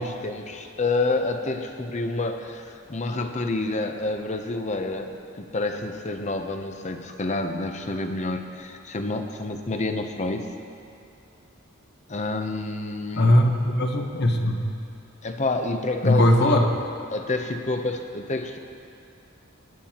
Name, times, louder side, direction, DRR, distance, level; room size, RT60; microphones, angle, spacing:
voice 1, 0.0-10.5 12.1-13.4 15.2-16.7 17.1-18.6, left 2 dB, 35° left, 6 dB, 0.7 m, -28 dB
voice 2, 13.1-14.6 16.0-16.6, left 1 dB, 55° left, 3 dB, 1.1 m, -19 dB
18.5 x 10.5 x 2.9 m, 2.6 s
head